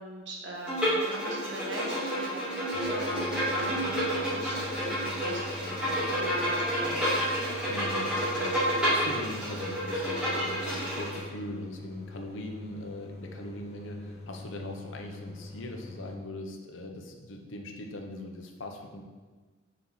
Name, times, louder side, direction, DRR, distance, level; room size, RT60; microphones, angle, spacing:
voice 1, 0.0-7.2, right 1 dB, 65° right, -2 dB, 1.2 m, -41 dB
Bowed string instrument, 0.7-11.2, equal, 5° right, 1.9 m, -29 dB
sound 1, 2.7-16.2, left 2 dB, 35° left, 0.8 m, -44 dB
voice 2, 7.7-19.0, left 1 dB, 85° left, 3 dB, 0.7 m, -41 dB
5.9 x 4.3 x 3.9 m, 1.4 s
head